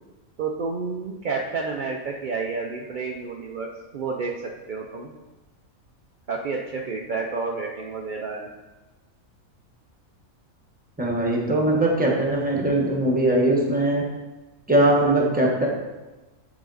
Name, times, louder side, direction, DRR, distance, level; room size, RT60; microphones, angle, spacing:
voice 1, 0.4-3.7 3.9-5.1 6.3-8.5, right 4 dB, 70° right, 0 dB, 0.4 m, -30 dB
voice 2, 11.0-14.1 14.7-15.7, right 1 dB, 5° right, -1 dB, 0.9 m, -21 dB
7.9 x 3.9 x 3.9 m, 1.2 s
omnidirectional pair, 1.5 m